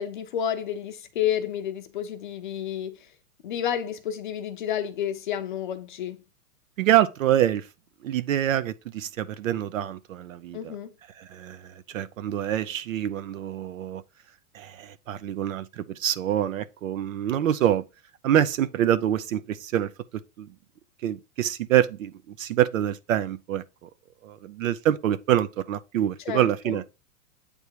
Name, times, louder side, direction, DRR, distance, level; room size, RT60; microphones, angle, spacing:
voice 1, 0.0-3.0 3.4-6.2 10.5-10.9 26.3-26.8, left 9 dB, 35° left, 0.6 m, -30 dB
voice 2, 6.8-7.7 8.0-10.7 11.2-14.0 14.5-17.8 18.2-20.5 21.0-23.9 24.2-26.8, right 11 dB, 60° right, 0.7 m, -26 dB
8.3 x 3.6 x 4.5 m
supercardioid pair, 175°, 45 cm